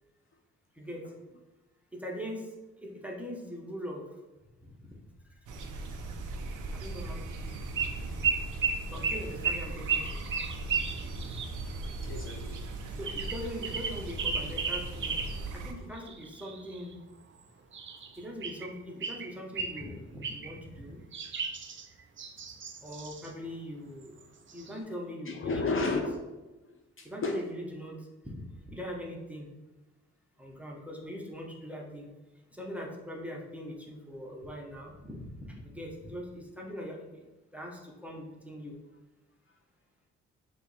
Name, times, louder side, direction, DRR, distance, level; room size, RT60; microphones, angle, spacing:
voice 1, 1.9-2.5 2.8-4.1 4.6-5.0 6.7-7.2 8.9-10.0 13.0-16.9 18.2-21.0 22.8-24.1 24.5-26.0 27.0-28.0 28.7-29.5 30.4-32.1 32.5-37.2 37.5-38.8, equal, 5° right, -1 dB, 1.2 m, -41 dB
sound 1, 5.5-15.7, right 2 dB, 80° right, 0.7 m, -39 dB
sound 2, 7.8-8.0 8.2-11.5 13.1-15.4 15.9-16.9 17.7-18.7 19.0-19.9 20.2-20.6 21.1-23.3 24.2-24.3 24.5-24.8, right 6 dB, 40° right, 0.6 m, -34 dB
voice 2, 12.0-12.7 16.0-16.1 24.7-24.9 25.2-26.3 26.6-27.4, left 3 dB, 45° left, 3 dB, 0.5 m, -33 dB
6.0 x 2.6 x 3.4 m, 1.1 s
cardioid pair, 65°, 30 cm